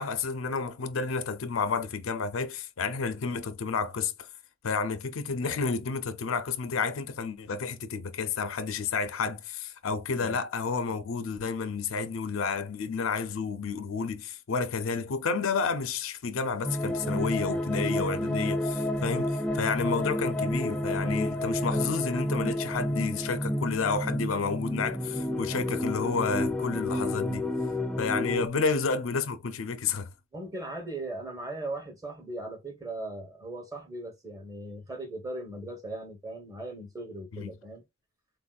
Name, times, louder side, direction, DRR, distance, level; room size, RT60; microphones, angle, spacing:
voice 1, 0.0-4.3 4.6-27.5 28.0-30.1 37.3-37.5, left 5 dB, 75° left, 0.5 m, -30 dB
sound 1, 16.6-28.5, left 1 dB, 5° left, 0.3 m, -30 dB
voice 2, 30.3-37.8, right 2 dB, 15° right, 0.9 m, -38 dB
3.9 x 2.6 x 2.3 m
head